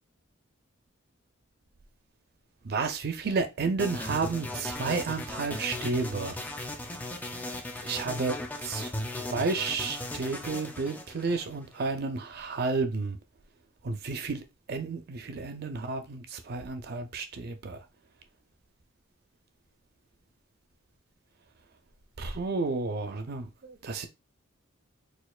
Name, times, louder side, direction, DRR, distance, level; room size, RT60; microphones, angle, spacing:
voice 1, 2.7-6.4 7.8-8.9 9.3-13.2 13.8-14.4 14.7-17.8 22.2-24.1, right 4 dB, 50° right, 0.5 m, -31 dB
sound 1, 3.8-11.9, left 1 dB, 10° left, 0.4 m, -37 dB
4.3 x 2.4 x 2.3 m
head